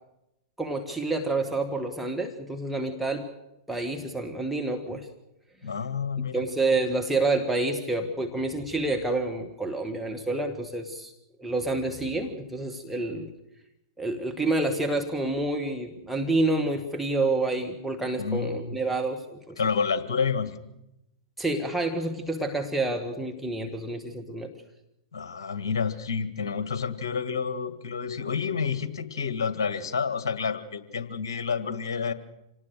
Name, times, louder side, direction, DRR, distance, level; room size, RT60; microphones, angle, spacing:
voice 1, 0.6-3.3 3.7-5.1 6.2-11.1 11.4-13.3 14.0-19.6 21.4-24.5, right 2 dB, ahead, 1 dB, 1.7 m, -28 dB
voice 2, 5.6-6.4 18.2-18.8 19.6-20.6 25.1-32.1, left 5 dB, 60° left, 11 dB, 1.8 m, -29 dB
26.5 x 19.0 x 6.6 m, 0.88 s
figure-of-eight pair, 100°, 2 cm